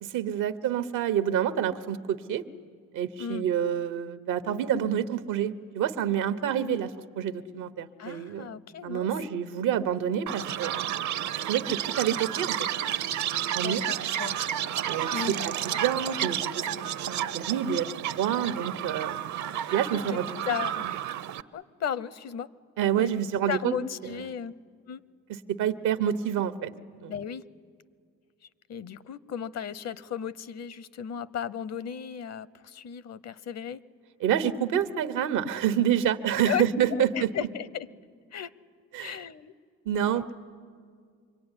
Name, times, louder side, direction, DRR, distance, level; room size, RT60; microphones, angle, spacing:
voice 1, 0.0-2.4 2.9-8.5 8.8-10.7 11.5-12.7 13.5-13.9 14.9-16.7 17.0-19.2 19.7-20.3 22.8-23.7 24.0-24.2 25.3-26.7 27.0-27.1 34.2-37.3 38.9-39.2 39.8-40.3, right 9 dB, 90° right, 11 dB, 1.1 m, -28 dB
voice 2, 8.0-9.1 13.6-14.4 15.1-15.5 19.9-20.2 20.5-20.8 21.5-22.5 23.0-23.1 23.5-24.5 24.9-25.0 27.1-27.4 28.7-33.8 36.5-36.6 37.0-37.9 38.3-38.5 39.0-39.5 40.1-40.2, left 8 dB, 60° left, 18 dB, 0.8 m, -35 dB
Chirp tweet, 10.3-21.4, right 10 dB, 70° right, 0.8 m, -31 dB
26.0 x 22.5 x 9.8 m, 2.1 s
cardioid pair, 90°, 30 cm